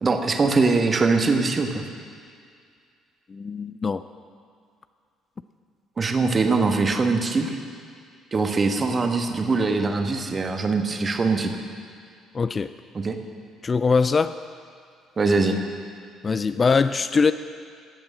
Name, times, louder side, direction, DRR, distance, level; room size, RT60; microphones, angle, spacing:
voice 1, 0.0-1.8 6.0-7.6 8.3-11.5 12.9-13.2 15.2-15.6, right 3 dB, 30° right, 5 dB, 1.3 m, -22 dB
voice 2, 3.3-4.0 12.3-12.7 13.6-14.3 16.2-17.3, left 5 dB, 30° left, 12 dB, 0.4 m, -22 dB
15.5 x 8.7 x 6.4 m, 2.2 s
figure-of-eight pair, 50°, 0 cm